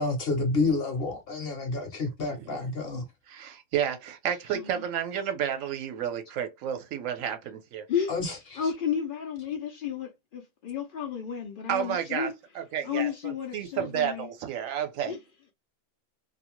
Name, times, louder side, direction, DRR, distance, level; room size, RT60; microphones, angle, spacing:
voice 1, 0.0-3.0 8.1-8.6, left 3 dB, 55° left, 0.7 m, -29 dB
voice 2, 2.3-2.7 3.3-7.9 11.7-15.1, right 9 dB, 70° right, 1.0 m, -31 dB
voice 3, 4.5-4.9 7.9-12.3 12.8-14.3 15.1-15.2, left 8 dB, 85° left, 0.4 m, -32 dB
2.6 x 2.1 x 2.9 m
omnidirectional pair, 1.5 m